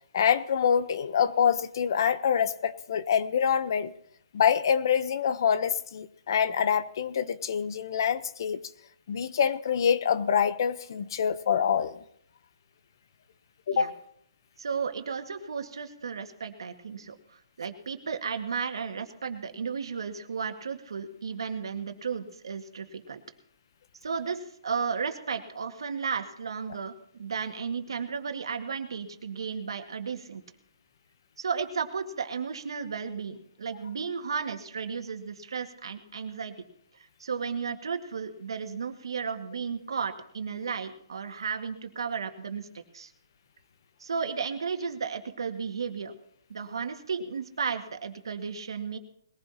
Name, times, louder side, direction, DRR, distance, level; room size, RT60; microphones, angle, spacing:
voice 1, 0.1-3.9 4.3-8.6 9.1-12.0 13.7-13.9, left 7 dB, 55° left, 14 dB, 0.9 m, -25 dB
voice 2, 14.6-23.2 24.0-26.9 27.2-30.4 31.4-36.7 37.2-43.1 44.0-46.1 46.5-49.0, right 6 dB, 80° right, 6 dB, 1.9 m, -34 dB
21.0 x 15.5 x 2.9 m, 0.69 s
hypercardioid pair, 160°, 3 cm